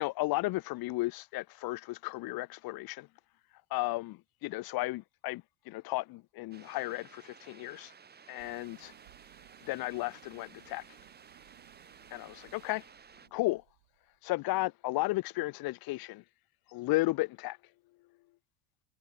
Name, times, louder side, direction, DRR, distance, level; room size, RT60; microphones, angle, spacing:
voice 1, 0.0-3.1 3.7-7.9 8.3-8.9 9.6-10.8 12.1-12.8 13.3-13.6 14.2-16.2 16.7-17.6, left 20 dB, 50° left, 2.2 m, -34 dB
sound 1, 6.5-13.3, right 6 dB, 20° right, 6.2 m, -56 dB
sound 2, 8.4-14.3, right 22 dB, 80° right, 6.7 m, -61 dB
supercardioid pair, 140°, 47 cm